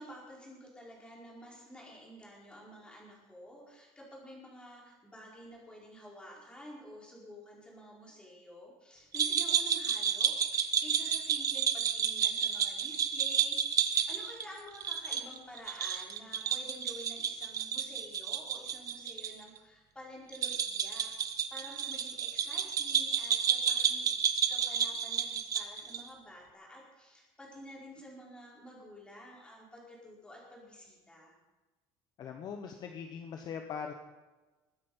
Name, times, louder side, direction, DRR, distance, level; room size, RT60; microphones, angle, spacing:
voice 1, 0.0-24.1 24.5-31.3, equal, 10° left, -3 dB, 4.7 m, -50 dB
sound 1, 9.1-19.3 19.6-19.7 20.3-26.1, right 8 dB, 35° right, 1.1 m, -31 dB
voice 2, 32.2-33.9, left 6 dB, 40° left, 5 dB, 1.2 m, -41 dB
21.5 x 9.6 x 5.5 m, 1.2 s
cardioid pair, 170°, 10 cm